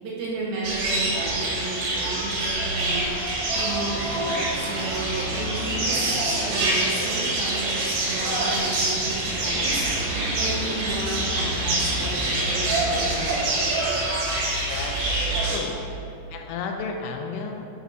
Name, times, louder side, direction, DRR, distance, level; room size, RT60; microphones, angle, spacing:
voice 1, 0.0-3.1 3.5-9.8 10.3-13.4, right 3 dB, 75° right, -5 dB, 2.3 m, -33 dB
sound 1, 0.6-15.6, right 2 dB, 90° right, 3.4 m, -25 dB
voice 2, 14.7-15.8 16.3-17.7, left 4 dB, 90° left, 3 dB, 2.9 m, -33 dB
8.0 x 6.1 x 2.7 m, 2.7 s
omnidirectional pair, 4.9 m